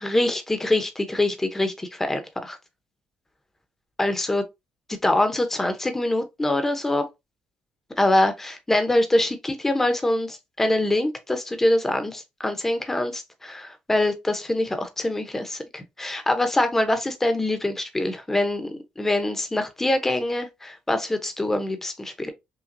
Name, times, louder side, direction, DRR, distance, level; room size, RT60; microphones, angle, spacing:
voice 1, 0.0-2.6 4.0-4.4 5.0-7.0 8.0-22.3, left 1 dB, 10° left, 0.8 m, -24 dB
5.8 x 2.3 x 2.6 m
cardioid pair, 120°, 3 cm